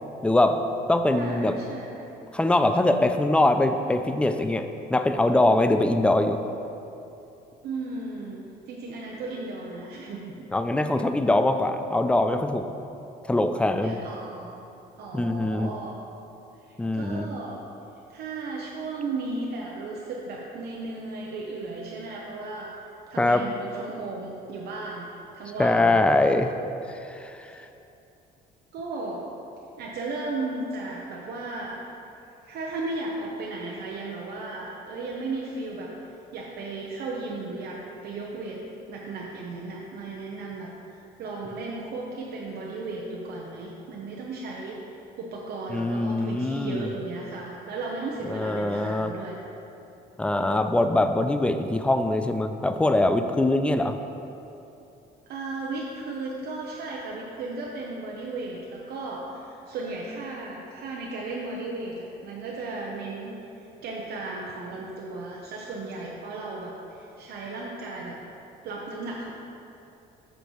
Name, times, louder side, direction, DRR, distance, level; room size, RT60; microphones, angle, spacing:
voice 1, 0.2-0.6 0.9-1.6 2.3-6.4 10.5-12.7 13.3-14.0 15.1-15.7 16.8-17.3 23.2-23.4 25.6-26.5 26.9-27.6 45.7-46.9 48.3-49.1 50.2-54.0, left 2 dB, 5° left, 8 dB, 0.3 m, -23 dB
voice 2, 1.1-2.2 7.6-10.5 13.8-14.7 15.0-16.0 16.7-17.6 18.1-22.7 23.1-25.1 25.3-26.0 27.5-27.6 28.7-29.3 29.8-31.8 32.5-35.9 36.3-38.6 38.9-44.8 45.2-49.4 55.3-68.2 68.6-69.3, right 3 dB, 70° right, -3 dB, 0.8 m, -35 dB
7.8 x 6.6 x 3.1 m, 2.8 s
cardioid pair, 110°, 17 cm